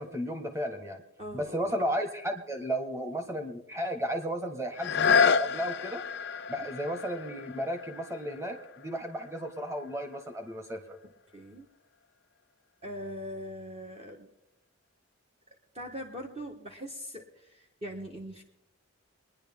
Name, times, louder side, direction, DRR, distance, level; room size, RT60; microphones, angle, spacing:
voice 1, 0.0-1.0 1.3-6.0 6.5-11.0, equal, 15° right, 4 dB, 1.3 m, -34 dB
voice 2, 1.2-1.6 6.6-6.7 11.3-11.7 12.8-14.3 15.7-18.4, equal, 30° right, 0 dB, 1.1 m, -41 dB
sound 1, 4.7-10.4 11.0-11.1, left 6 dB, 50° left, 0.4 m, -30 dB
24.5 x 10.5 x 3.6 m, 0.82 s
head